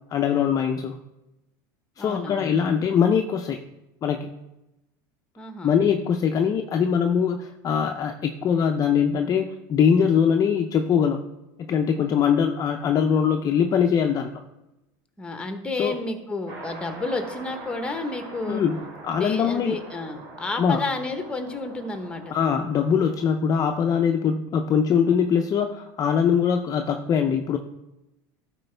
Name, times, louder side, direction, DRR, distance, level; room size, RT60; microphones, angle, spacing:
voice 1, 0.1-1.0 2.0-3.6 4.0-4.3 5.6-11.2 11.6-14.3 15.8-15.9 18.5-19.8 20.6-20.8 22.3-27.6, left 7 dB, 35° left, 4 dB, 0.5 m, -22 dB
voice 2, 2.0-2.5 5.4-5.8 15.2-18.6 19.1-22.2, left 3 dB, 10° left, 6 dB, 1.1 m, -31 dB
sound 1, 16.5-23.2, right 3 dB, 70° right, 2.5 m, -42 dB
12.0 x 4.5 x 3.4 m, 0.94 s
supercardioid pair, 120°, 11 cm